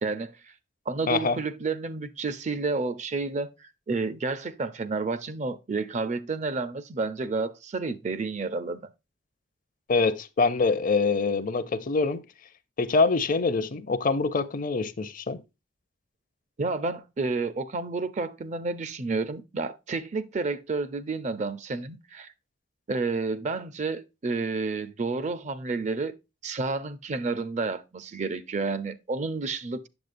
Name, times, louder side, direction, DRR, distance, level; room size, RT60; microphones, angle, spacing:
voice 1, 0.0-0.3 0.9-8.8 16.6-22.3 22.9-26.1 26.4-29.9, right 3 dB, 40° right, 0.5 m, -30 dB
voice 2, 1.1-1.4 9.9-12.2 12.8-15.4, left 4 dB, 45° left, 0.5 m, -25 dB
7.9 x 7.1 x 2.5 m
head